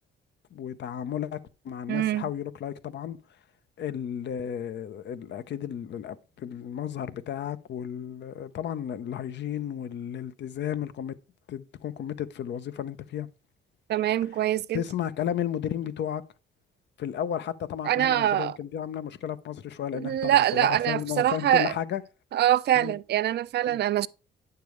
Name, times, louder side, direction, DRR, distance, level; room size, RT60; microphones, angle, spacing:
voice 1, 0.5-3.2 3.8-11.2 11.5-13.3 14.7-16.2 17.0-22.0 22.7-22.9 23.7-23.8, left 9 dB, 60° left, 0.7 m, -33 dB
voice 2, 1.9-2.2 13.9-14.8 17.8-18.5 19.9-21.7 22.3-24.1, right 12 dB, 55° right, 0.4 m, -24 dB
9.4 x 6.8 x 3.2 m
cardioid pair, 90°, 20 cm